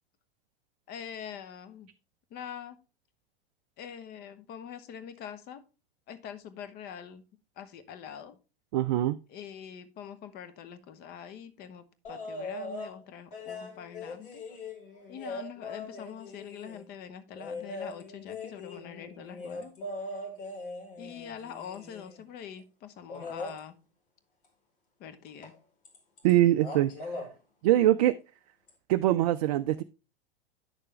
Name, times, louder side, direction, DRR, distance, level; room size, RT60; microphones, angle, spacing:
voice 1, 0.9-1.9 2.3-2.8 3.8-5.6 6.1-7.2 7.6-8.4 9.3-14.4 15.1-19.7 20.1-20.2 21.0-23.8 25.0-25.5, left 8 dB, 30° left, 1.0 m, -44 dB
voice 2, 8.7-9.2 26.2-26.9 27.6-28.2 28.9-29.8, right 14 dB, 40° right, 0.4 m, -23 dB
sound 1, 12.0-12.9 13.3-16.8 17.3-22.2 23.1-23.6 25.4-25.5 25.8-26.3 26.6-27.3 28.7-28.8, left 2 dB, 60° left, 3.0 m, -40 dB
9.8 x 6.6 x 3.2 m
figure-of-eight pair, 90°, 30 cm